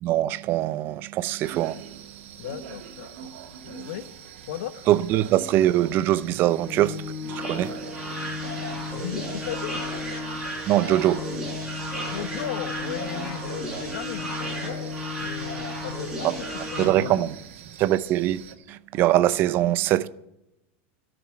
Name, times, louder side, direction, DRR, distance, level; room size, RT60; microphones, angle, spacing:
voice 1, 0.0-1.8 4.9-7.8 10.7-11.2 16.2-16.3 16.8-17.3 17.8-20.1, right 14 dB, 30° right, 0.5 m, -23 dB
sound 1, 1.4-18.5, right 8 dB, 85° right, 2.3 m, -43 dB
voice 2, 2.4-3.3 3.6-4.1 4.5-4.9 8.9-9.8 12.0-16.3 16.7-17.3, left 10 dB, 80° left, 1.2 m, -36 dB
Organ, 6.4-17.3, left 5 dB, 40° left, 5.1 m, -37 dB
sound 2, 7.3-16.8, right 1 dB, 5° right, 4.8 m, -35 dB
16.5 x 6.9 x 8.9 m
supercardioid pair, 175°, 7 cm